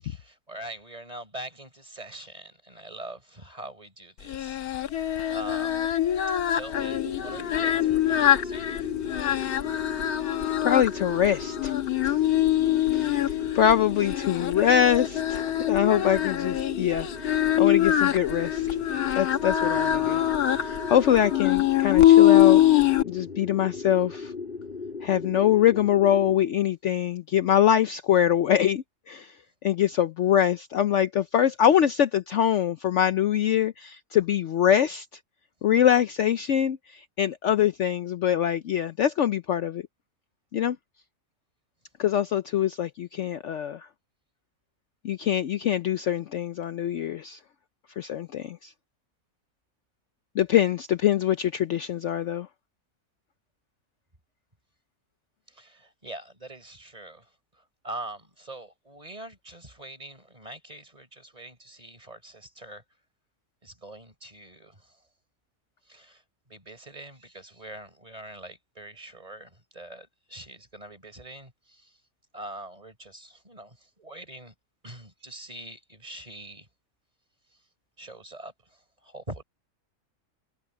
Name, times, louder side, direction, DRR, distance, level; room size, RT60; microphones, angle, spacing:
voice 1, 0.0-5.8 6.3-8.9 55.5-62.8 63.6-65.0 65.9-66.2 66.5-72.0 72.3-74.5 74.8-76.7 78.0-79.4, right 1 dB, 25° right, 4.1 m, -43 dB
Singing, 4.3-23.0, left 12 dB, 80° left, 1.5 m, -23 dB
sound 1, 6.7-26.4, left 4 dB, 35° left, 4.1 m, -37 dB
voice 2, 10.6-11.7 12.0-12.1 12.9-18.8 19.2-20.2 20.6-22.6 23.0-24.3 25.0-29.3 29.6-35.1 35.6-39.8 40.5-40.8 42.0-43.9 45.0-47.4 48.0-48.7 50.4-52.5, left 10 dB, 60° left, 0.9 m, -24 dB
omnidirectional pair, 1.6 m